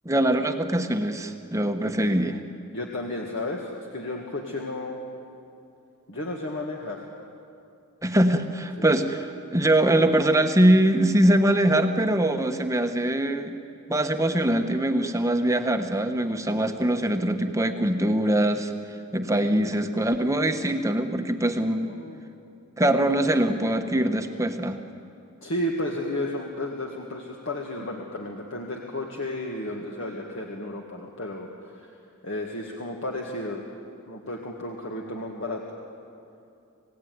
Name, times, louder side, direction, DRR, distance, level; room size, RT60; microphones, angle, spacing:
voice 1, 0.0-2.4 8.0-13.6 13.9-18.7 19.1-21.9 22.8-24.8, right 1 dB, 15° right, 6 dB, 1.1 m, -23 dB
voice 2, 2.7-5.0 6.1-7.0 8.8-8.9 21.8-22.2 25.4-31.9 32.2-33.6 34.1-35.6, left 1 dB, 55° left, 0 dB, 2.0 m, -33 dB
27.5 x 17.5 x 9.5 m, 2.6 s
head